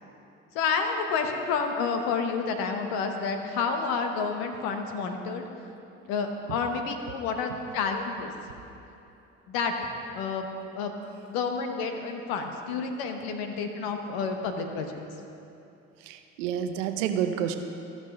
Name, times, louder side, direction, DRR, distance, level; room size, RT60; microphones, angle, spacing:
voice 1, 0.5-5.4 6.1-8.3 9.5-10.5 10.7-10.9 11.2-15.0, left 5 dB, 70° left, 5 dB, 1.2 m, -30 dB
voice 2, 16.1-17.6, right 9 dB, 80° right, 8 dB, 0.7 m, -29 dB
14.5 x 6.1 x 5.4 m, 2.8 s
hypercardioid pair, 55°, 37 cm